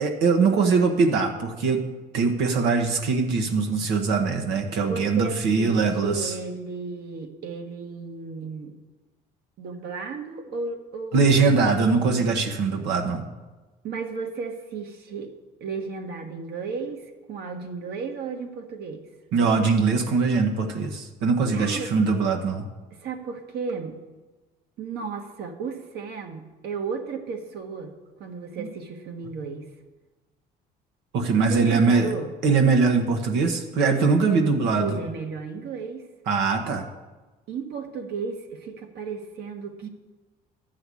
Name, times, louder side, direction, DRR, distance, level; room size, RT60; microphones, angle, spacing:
voice 1, 0.0-1.8 2.1-6.3 11.1-13.2 19.3-22.6 28.6-28.7 31.1-32.1 32.4-35.0 36.3-36.9 39.8-39.9, right 4 dB, 85° right, 3 dB, 1.2 m, -22 dB
voice 2, 4.8-8.8 9.6-12.2 13.8-15.3 15.6-19.1 21.5-21.9 22.9-24.0 24.8-29.7 31.5-32.3 34.3-36.0 37.5-39.9, right 5 dB, 70° right, 4 dB, 1.6 m, -34 dB
11.5 x 5.7 x 8.4 m, 1.2 s
cardioid pair, 110°, 17 cm